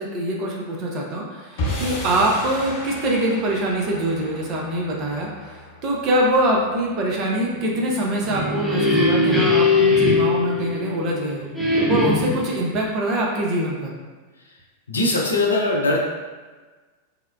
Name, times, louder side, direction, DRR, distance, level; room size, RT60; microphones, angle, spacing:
voice 1, 0.0-11.5 11.9-13.9, right 1 dB, 35° right, -1 dB, 0.6 m, -24 dB
sound 1, 1.6-7.9, left 1 dB, 55° left, 0.8 m, -34 dB
sound 2, 8.1-11.1 11.6-12.5, left 3 dB, 10° left, 0.6 m, -20 dB
voice 2, 14.9-16.1, left 2 dB, 75° left, -1 dB, 0.4 m, -21 dB
3.4 x 2.1 x 2.3 m, 1.3 s
figure-of-eight pair, 90°, 0 cm